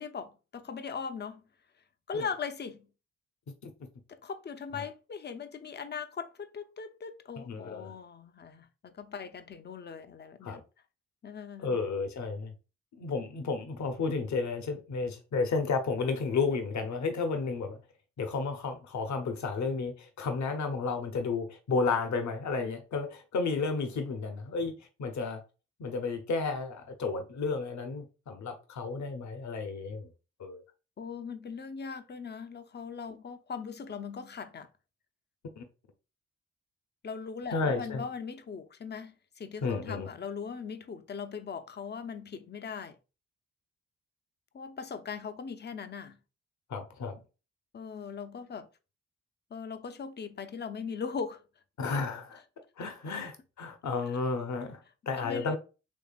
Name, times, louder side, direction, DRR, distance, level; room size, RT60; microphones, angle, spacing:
voice 1, 0.0-1.4 2.1-2.8 4.1-10.6 11.2-11.8 31.0-34.7 37.0-43.0 44.5-46.2 47.7-48.7 49.5-51.4 53.1-53.3 55.1-55.6, left 6 dB, 30° left, 0.6 m, -39 dB
voice 2, 7.4-7.9 10.4-10.6 11.6-12.5 12.9-17.8 18.2-25.4 25.8-30.1 30.4-30.6 35.6-35.7 37.5-38.0 39.6-40.1 46.7-47.2 51.8-52.4 52.8-54.8 55.1-55.6, left 4 dB, 55° left, 0.9 m, -32 dB
3.6 x 3.2 x 2.4 m
hypercardioid pair, 40°, 35 cm